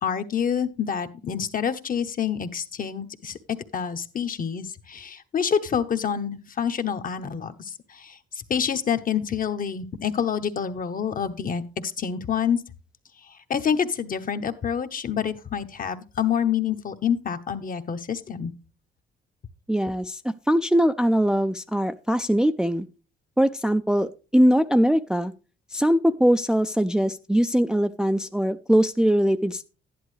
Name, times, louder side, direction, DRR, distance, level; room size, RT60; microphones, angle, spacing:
voice 1, 0.0-3.4 3.7-8.2 8.5-12.6 13.5-18.5, left 7 dB, 45° left, 9 dB, 1.0 m, -27 dB
voice 2, 19.7-22.9 23.4-25.3 25.7-29.6, equal, 5° right, 8 dB, 0.4 m, -21 dB
11.5 x 10.5 x 3.2 m, 0.34 s
cardioid pair, 90°, 20 cm